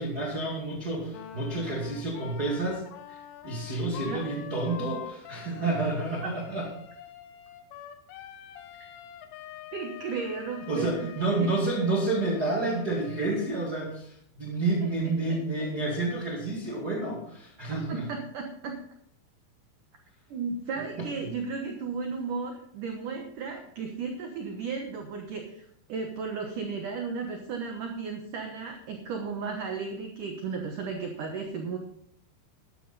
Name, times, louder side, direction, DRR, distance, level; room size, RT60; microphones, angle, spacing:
voice 1, 0.0-2.8 3.1-6.7 10.7-18.1 20.7-20.8, right 2 dB, 65° right, -3 dB, 0.9 m, -29 dB
Wind instrument woodwind instrument, 1.1-13.6, left 10 dB, 85° left, 3.5 m, -45 dB
voice 2, 9.7-10.9 11.4-11.5 15.0-15.4 17.7-18.7 20.3-31.8, right 5 dB, 80° right, 3 dB, 1.8 m, -34 dB
13.0 x 11.5 x 4.1 m, 0.65 s
omnidirectional pair, 5.7 m